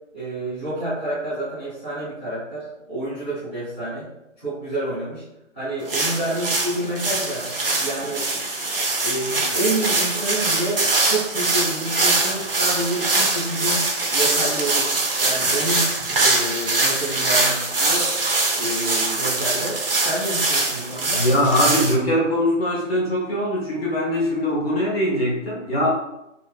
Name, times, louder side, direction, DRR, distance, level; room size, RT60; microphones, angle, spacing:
voice 1, 0.1-4.1 4.4-5.2 5.5-7.5 7.8-8.2 9.0-13.8 14.1-14.9 15.2-15.9 16.1-18.1 18.5-21.2, right 1 dB, 10° left, -16 dB, 0.6 m, -28 dB
sound 1, 5.9-21.9, right 2 dB, 50° right, 0.4 m, -23 dB
voice 2, 21.1-25.9, left 1 dB, 50° left, -5 dB, 1.0 m, -21 dB
2.5 x 2.3 x 2.2 m, 0.87 s
figure-of-eight pair, 160°, 38 cm